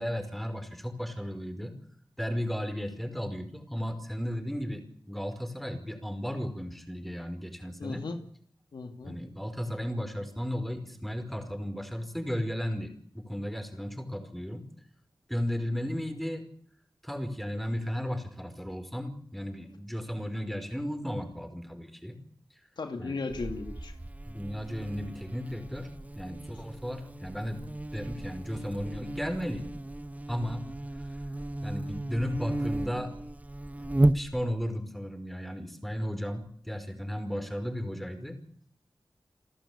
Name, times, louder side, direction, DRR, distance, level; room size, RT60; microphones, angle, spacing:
voice 1, 0.0-1.7 2.2-8.0 9.0-14.7 15.3-16.4 17.0-22.2 23.0-23.2 24.3-25.9 26.2-27.6 27.9-29.6 30.3-30.7 31.0-31.2 31.6-33.1 33.7-33.9 34.1-38.4, equal, ahead, 8 dB, 5.2 m, -34 dB
voice 2, 7.8-8.2 8.7-9.2 22.8-24.0, left 3 dB, 80° left, 6 dB, 2.4 m, -36 dB
Buzz, 23.3-34.7, right 1 dB, 20° right, 1.1 m, -34 dB
29.5 x 12.0 x 8.7 m, 0.62 s
cardioid pair, 55°, 8 cm